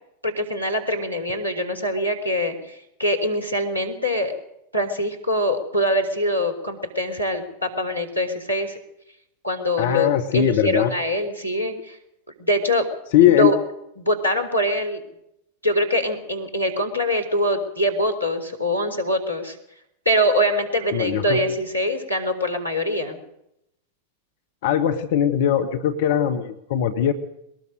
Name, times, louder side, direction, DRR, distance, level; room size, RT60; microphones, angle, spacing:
voice 1, 0.2-4.3 4.7-8.8 9.4-12.0 12.4-12.9 13.2-13.6 14.0-15.0 15.6-19.6 20.1-23.2, equal, 90° left, 4 dB, 4.1 m, -23 dB
voice 2, 9.8-10.9 13.1-13.5 20.9-21.4 24.6-27.1, left 10 dB, 55° left, 6 dB, 1.7 m, -20 dB
22.0 x 19.5 x 6.7 m, 0.79 s
figure-of-eight pair, 90°, 0 cm